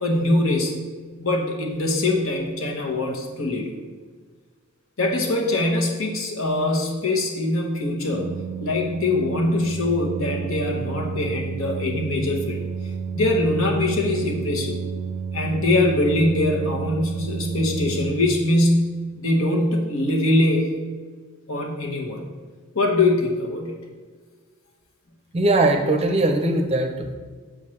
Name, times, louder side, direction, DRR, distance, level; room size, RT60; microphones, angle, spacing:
voice 1, 0.0-0.8 1.2-3.7 5.0-8.3 8.6-12.6 13.1-14.8 15.3-20.7 21.5-22.2 22.7-23.7, left 2 dB, 70° left, 1 dB, 1.0 m, -22 dB
Organ, 8.0-18.8, right 6 dB, 75° right, 0.4 m, -31 dB
voice 2, 25.3-27.1, right 2 dB, 30° right, 4 dB, 0.6 m, -20 dB
7.2 x 5.0 x 3.2 m, 1.5 s
head